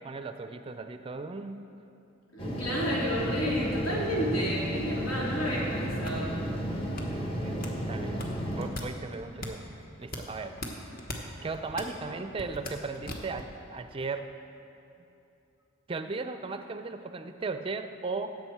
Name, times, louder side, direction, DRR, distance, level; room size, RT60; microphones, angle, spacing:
voice 1, 0.0-1.6 7.1-9.6 10.0-10.6 11.4-14.3 15.9-18.4, right 4 dB, 25° right, 8 dB, 0.4 m, -37 dB
voice 2, 2.3-6.3, equal, 85° left, -6 dB, 3.2 m, -31 dB
sound 1, 2.4-8.7, right 1 dB, 25° left, 1.1 m, -33 dB
sound 2, 5.6-13.6, left 1 dB, 45° left, 1.2 m, -41 dB
17.0 x 7.7 x 4.5 m, 2.8 s
head